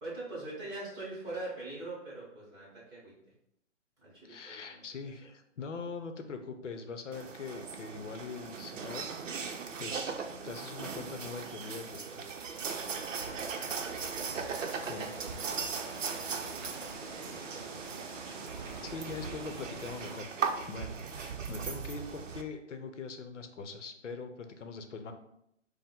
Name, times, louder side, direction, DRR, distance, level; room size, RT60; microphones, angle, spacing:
voice 1, 0.0-3.1 4.0-4.8 13.8-15.8 16.1-17.8, right 2 dB, 10° right, -7 dB, 0.9 m, -44 dB
voice 2, 4.3-12.4 13.5-13.8 14.8-15.2 18.3-18.4 18.8-20.3 20.7-25.1, left 4 dB, 75° left, 7 dB, 0.8 m, -42 dB
sound 1, 7.1-22.4, right 5 dB, 90° right, 0.7 m, -39 dB
sound 2, 12.5-20.2, right 3 dB, 40° right, 0.5 m, -45 dB
5.2 x 2.1 x 3.6 m, 0.77 s
hypercardioid pair, 155°, 37 cm